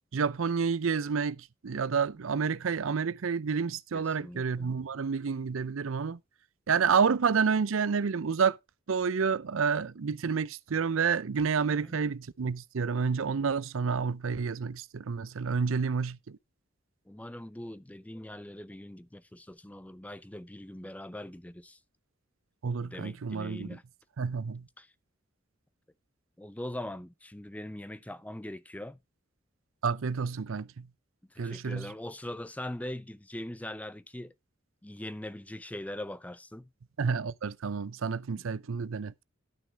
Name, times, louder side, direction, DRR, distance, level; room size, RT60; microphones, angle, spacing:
voice 1, 0.1-6.2 6.7-8.6 8.9-16.4 22.6-23.7 24.2-24.6 29.8-30.9 31.4-31.9 37.0-39.2, right 5 dB, 80° right, 0.6 m, -29 dB
voice 2, 3.9-4.7 11.7-12.0 15.7-15.8 17.1-21.8 22.8-23.8 24.8-24.9 26.4-29.0 31.3-34.3 34.8-36.7 38.3-38.4, left 1 dB, 5° left, 0.5 m, -41 dB
12.0 x 6.3 x 4.6 m
head